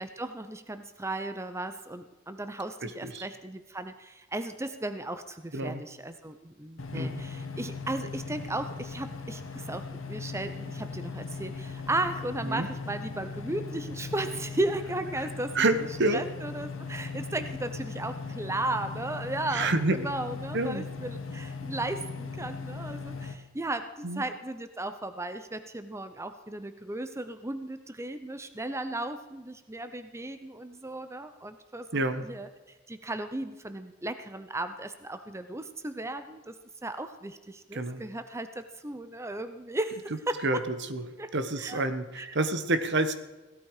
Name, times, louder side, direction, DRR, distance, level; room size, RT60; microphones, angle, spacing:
voice 1, 0.0-15.6 16.1-36.6 36.8-40.6 41.2-41.8 42.1-42.4, right 2 dB, 15° right, 10 dB, 0.7 m, -35 dB
voice 2, 2.8-3.2 5.5-5.8 6.9-7.2 12.4-12.7 15.5-16.2 19.5-20.0 20.5-20.9 24.0-24.2 31.9-32.2 37.7-38.0 40.4-41.0 41.3-43.1, right 2 dB, 60° right, 11 dB, 1.3 m, -28 dB
sound 1, 6.8-23.4, left 4 dB, 70° left, 1.6 m, -39 dB
16.5 x 12.5 x 4.8 m, 1.1 s
head